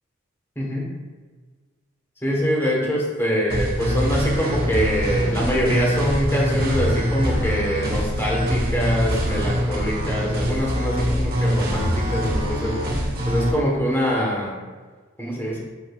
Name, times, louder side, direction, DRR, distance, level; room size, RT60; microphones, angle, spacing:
voice 1, 0.5-0.9 2.2-12.7 13.3-14.6 15.2-15.6, equal, 10° left, -3 dB, 1.5 m, -24 dB
sound 1, 3.5-13.5, equal, 50° right, 1.8 m, -24 dB
7.4 x 6.8 x 2.5 m, 1.4 s
head